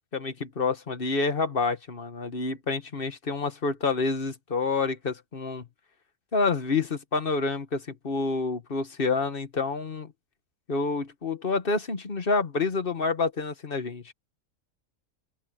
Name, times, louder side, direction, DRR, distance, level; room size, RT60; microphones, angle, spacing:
voice 1, 0.1-5.7 6.3-10.1 10.7-14.1, left 4 dB, 40° left, 1.6 m, -28 dB
open air
omnidirectional pair, 1.5 m